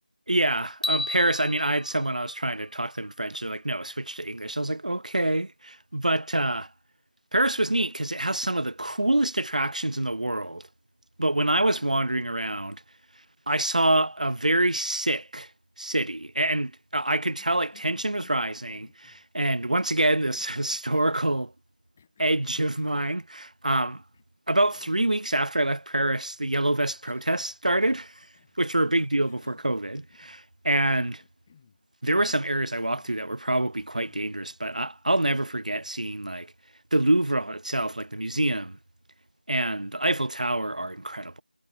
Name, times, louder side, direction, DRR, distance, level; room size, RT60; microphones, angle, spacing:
voice 1, 0.3-6.7 7.3-10.7 11.2-12.8 13.5-15.5 15.8-21.5 22.2-24.0 24.5-28.1 28.6-31.2 32.0-36.5 36.9-38.8 39.5-41.4, right 1 dB, 50° right, 1.1 m, -26 dB
sound 1, 0.8-3.1, left 1 dB, 55° left, 4.3 m, -34 dB
Cough, 17.3-19.2 20.0-21.3 22.0-22.8 24.1-24.2 24.7-25.1 25.5-25.6 27.0-27.6 28.2-28.6 29.0-30.4 30.7-31.8 32.1-32.4 32.8-33.2 33.8-34.3, left 7 dB, 10° left, 4.0 m, -59 dB
figure-of-eight pair, 180°, 5 cm